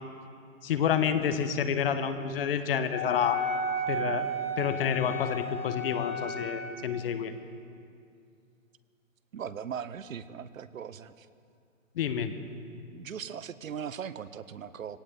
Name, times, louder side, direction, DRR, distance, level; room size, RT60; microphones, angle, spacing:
voice 1, 0.6-3.4 3.9-4.3 4.6-7.3 11.9-12.3, left 8 dB, 45° left, 10 dB, 1.1 m, -29 dB
Wind instrument woodwind instrument, 2.9-6.8, left 1 dB, 90° left, 2.4 m, -33 dB
voice 2, 9.3-11.3 12.9-15.0, right 8 dB, 90° right, 15 dB, 0.8 m, -39 dB
21.5 x 17.0 x 3.8 m, 2.3 s
hypercardioid pair, 150°, 39 cm